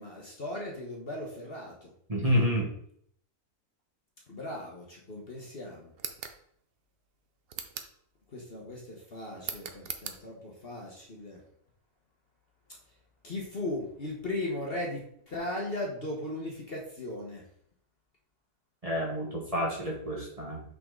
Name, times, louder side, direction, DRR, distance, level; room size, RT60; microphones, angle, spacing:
voice 1, 0.0-1.9 4.3-5.9 8.3-11.4 13.2-17.4, left 1 dB, 40° left, -2 dB, 1.3 m, -37 dB
voice 2, 2.1-2.7 18.8-20.6, equal, 25° right, -3 dB, 1.4 m, -29 dB
sound 1, 5.9-6.4 7.5-8.0 9.4-10.2, right 7 dB, 60° right, 0.6 m, -39 dB
5.6 x 5.3 x 3.8 m, 0.67 s
omnidirectional pair, 1.6 m